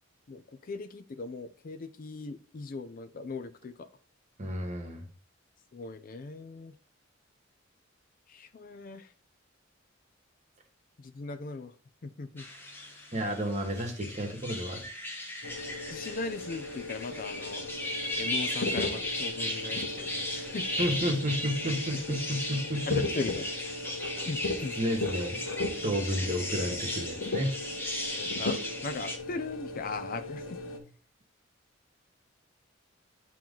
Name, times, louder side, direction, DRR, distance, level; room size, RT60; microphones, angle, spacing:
voice 1, 0.3-3.9 5.7-6.7 8.3-9.1 11.0-11.7 12.0-12.4 15.9-17.7 18.2-20.8 22.1-22.2 22.9-23.5 24.3-24.7 28.2-30.6, left 3 dB, 45° left, 0.4 m, -39 dB
voice 2, 4.4-5.0 13.1-14.8 20.8-23.0 24.8-25.4 25.8-27.5, equal, 35° right, 1.3 m, -31 dB
sound 1, 12.4-29.2, left 1 dB, 10° left, 0.9 m, -36 dB
sound 2, 15.4-30.8, left 2 dB, 90° left, 1.0 m, -37 dB
8.7 x 3.0 x 3.7 m
head